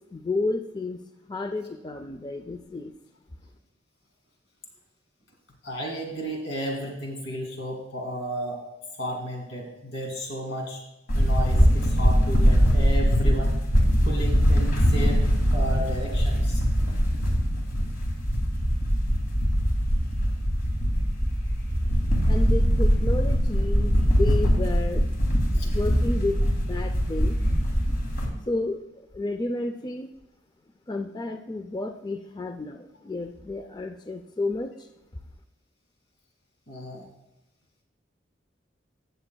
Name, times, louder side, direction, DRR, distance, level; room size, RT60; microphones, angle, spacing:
voice 1, 0.1-1.0 1.3-2.9 22.3-25.1 25.6-27.4 28.5-28.8 29.1-30.1 30.9-34.9, left 2 dB, 25° left, 7 dB, 0.4 m, -31 dB
voice 2, 5.6-8.6 8.9-10.8 11.1-13.5 14.0-15.2 15.5-16.6 25.5-25.7 36.7-37.1, equal, 90° left, 1 dB, 2.5 m, -33 dB
sound 1, 11.1-28.3, equal, 55° left, 2.0 m, -22 dB
17.0 x 6.9 x 2.3 m, 0.97 s
head